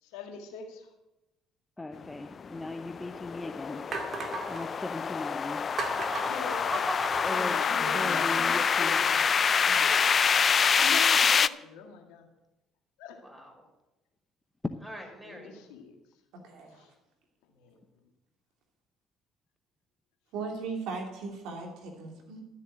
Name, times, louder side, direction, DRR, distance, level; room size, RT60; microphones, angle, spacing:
voice 1, 0.0-0.9 1.9-2.1 4.9-5.1 6.2-6.9 7.3-9.2 9.8-12.3 13.0-13.2 15.2-15.9 16.7-16.9 17.6-17.8, left 6 dB, 75° left, 4 dB, 1.8 m, -41 dB
voice 2, 1.8-5.8 7.2-7.6 7.9-9.0, left 2 dB, 15° left, 8 dB, 0.8 m, -38 dB
sound 1, 2.4-11.5, left 6 dB, 40° left, 0.4 m, -26 dB
sound 2, 2.5-2.6 3.3-3.4 3.9-4.7 5.8-7.3, right 3 dB, 45° right, 2.2 m, -36 dB
voice 3, 6.7-7.5 13.2-13.6 14.8-15.5, equal, 10° right, 1 dB, 5.7 m, -38 dB
voice 4, 7.4-8.3 9.7-9.8 16.4-16.9 20.3-22.4, right 4 dB, 70° right, 2 dB, 2.7 m, -39 dB
12.5 x 7.3 x 7.8 m, 0.97 s
hypercardioid pair, 55°, 0 cm